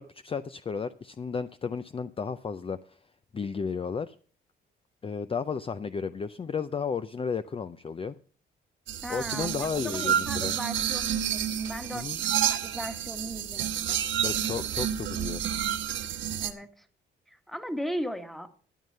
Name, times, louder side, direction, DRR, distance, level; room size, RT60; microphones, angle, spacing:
voice 1, 0.0-3.0 3.3-4.2 5.0-8.1 9.1-10.5 11.9-12.2 14.2-15.4, left 5 dB, 30° left, 12 dB, 0.5 m, -33 dB
sound 1, 8.9-16.5, right 9 dB, 75° right, 1.4 m, -29 dB
voice 2, 9.0-12.1 12.4-14.0 16.4-16.9 17.3-18.5, equal, ahead, 9 dB, 1.5 m, -37 dB
13.0 x 9.2 x 5.5 m, 0.43 s
cardioid pair, 90°, 20 cm